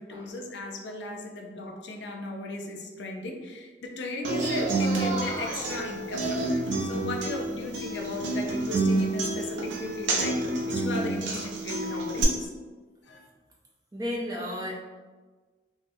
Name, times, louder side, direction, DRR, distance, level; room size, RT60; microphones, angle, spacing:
voice 1, 0.0-12.5 13.0-13.2, left 2 dB, 75° left, 1 dB, 0.4 m, -37 dB
Human voice / Acoustic guitar, 4.2-12.2, right 2 dB, 85° right, 0.6 m, -29 dB
voice 2, 13.9-14.7, left 1 dB, 20° right, -3 dB, 0.5 m, -33 dB
3.7 x 2.0 x 2.6 m, 1.3 s
head